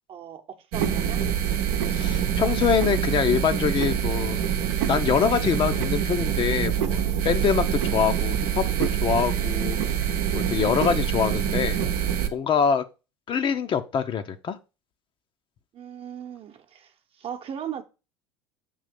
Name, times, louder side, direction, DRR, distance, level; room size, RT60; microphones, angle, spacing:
voice 1, 0.1-1.2 15.7-17.8, right 9 dB, 45° right, 0.9 m, -38 dB
sound 1, 0.7-12.3, right 9 dB, 70° right, 0.8 m, -25 dB
voice 2, 1.9-4.4 4.8-9.8 10.3-11.8 12.3-12.8 13.3-14.6, left 7 dB, 40° left, 0.7 m, -24 dB
7.0 x 2.8 x 5.2 m
hypercardioid pair, 75°, 14 cm